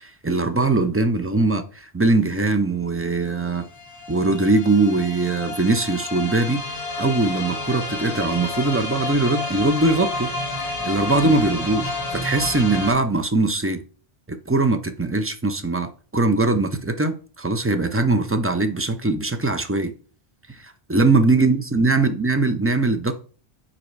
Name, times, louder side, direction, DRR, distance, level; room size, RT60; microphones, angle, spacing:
voice 1, 0.0-3.6 4.1-10.3 10.8-13.8 14.3-19.9 20.5-23.1, right 3 dB, 25° right, 7 dB, 0.3 m, -21 dB
sound 1, 2.7-2.8 3.0-12.9, left 2 dB, 35° left, 1.4 m, -30 dB
5.1 x 4.2 x 4.7 m, 0.39 s
omnidirectional pair, 1.1 m